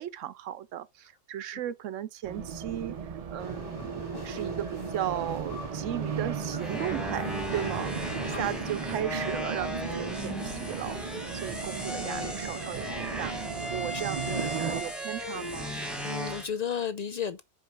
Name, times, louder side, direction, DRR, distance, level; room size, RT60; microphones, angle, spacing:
voice 1, 0.0-3.0 3.3-7.9 8.2-11.0 11.3-13.4 13.7-15.7, right 11 dB, 75° right, 0.9 m, -36 dB
Race car auto racing, 2.2-14.8, right 6 dB, 50° right, 0.4 m, -36 dB
sound 1, 3.4-8.5, left 2 dB, 15° left, 1.7 m, -42 dB
sound 2, 6.6-16.5, equal, ahead, 1.3 m, -36 dB
voice 2, 11.9-12.4 13.9-14.0 14.3-14.5 15.7-17.4, left 7 dB, 65° left, 0.4 m, -35 dB
5.1 x 4.5 x 5.2 m
omnidirectional pair, 1.4 m